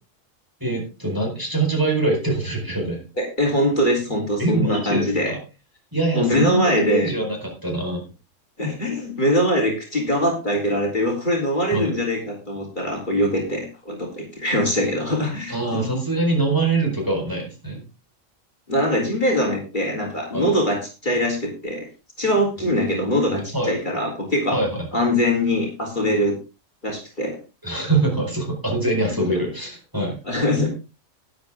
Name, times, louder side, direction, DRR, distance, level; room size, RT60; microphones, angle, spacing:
voice 1, 0.6-3.0 4.4-5.4 5.9-8.0 11.7-11.9 15.5-17.8 20.3-20.5 23.3-23.7 24.5-24.8 27.6-30.2, right 2 dB, 15° right, -1 dB, 4.6 m, -24 dB
voice 2, 3.2-5.3 6.1-7.1 8.6-15.9 18.7-21.9 22.2-24.6 24.9-26.4 26.8-27.4 29.3-29.4 30.2-30.7, equal, 35° left, -1 dB, 3.8 m, -22 dB
12.5 x 11.0 x 3.6 m, 0.29 s
omnidirectional pair, 1.4 m